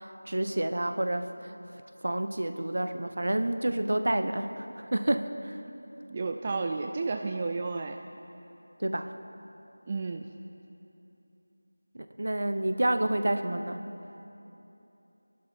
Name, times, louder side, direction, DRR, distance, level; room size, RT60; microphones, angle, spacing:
voice 1, 0.0-1.5 2.0-5.6 8.8-9.1 11.9-13.8, right 1 dB, 60° right, 9 dB, 0.9 m, -29 dB
voice 2, 6.1-8.0 9.9-10.3, right 3 dB, 20° right, 4 dB, 0.3 m, -32 dB
24.0 x 11.5 x 4.4 m, 3.0 s
figure-of-eight pair, 175°, 0 cm